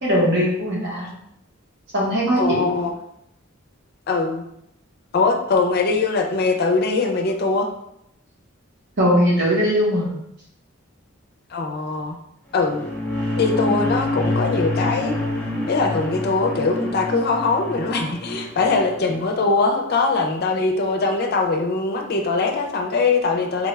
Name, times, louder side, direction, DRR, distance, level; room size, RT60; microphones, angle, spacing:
voice 1, 0.0-1.1 1.9-2.7 9.0-10.1, equal, 60° right, -4 dB, 1.1 m, -20 dB
voice 2, 2.4-2.9 4.1-4.4 5.1-7.7 11.5-12.2 12.5-12.9 13.4-15.1 15.7-23.7, left 3 dB, 50° left, 4 dB, 0.4 m, -21 dB
sound 1, 12.6-19.2, left 1 dB, 10° left, 0.9 m, -27 dB
3.8 x 2.3 x 3.1 m, 0.77 s
head